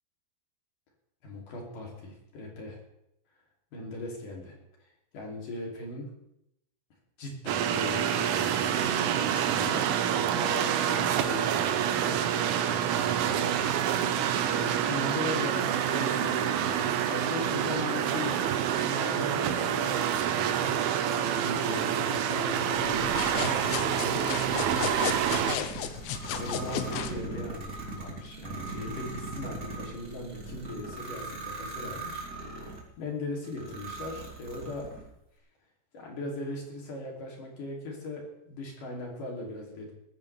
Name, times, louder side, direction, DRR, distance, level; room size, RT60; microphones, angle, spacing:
voice 1, 1.2-2.8 3.7-4.5 4.8-6.1 7.2-13.8 14.3-18.3 18.8-20.9 21.3-35.1 35.9-39.9, left 2 dB, 50° left, -1 dB, 4.2 m, -39 dB
sound 1, 7.5-25.6, right 9 dB, 75° right, 2.5 m, -27 dB
sound 2, 22.6-32.9 33.4-35.1, right 2 dB, 25° right, 2.7 m, -40 dB
sound 3, 23.0-27.2, left 10 dB, 85° left, 3.1 m, -34 dB
20.0 x 15.0 x 3.4 m, 0.80 s
omnidirectional pair, 5.1 m